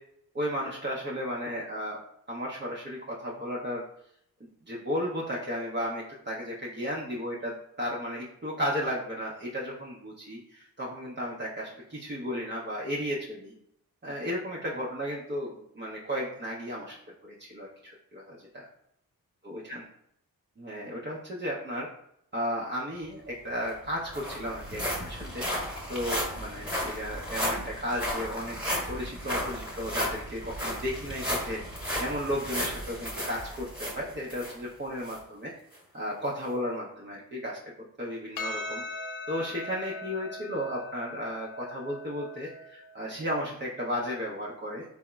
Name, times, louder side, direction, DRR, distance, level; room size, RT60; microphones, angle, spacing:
voice 1, 0.3-2.0 2.3-3.8 4.7-13.5 14.0-17.0 17.2-18.7 19.4-19.8 20.6-21.9 22.3-25.4 25.9-28.6 28.9-31.6 32.0-35.5 35.9-37.6 38.0-38.8 39.3-44.8, equal, 30° right, -6 dB, 0.7 m, -34 dB
sound 1, 23.3-23.4 23.7-34.6 35.0-35.2 35.7-35.8, equal, 5° right, 1.2 m, -34 dB
Percussion, 38.4-43.0, left 2 dB, 65° left, 0.5 m, -40 dB
3.4 x 2.0 x 2.3 m, 0.73 s
supercardioid pair, 45°, 37 cm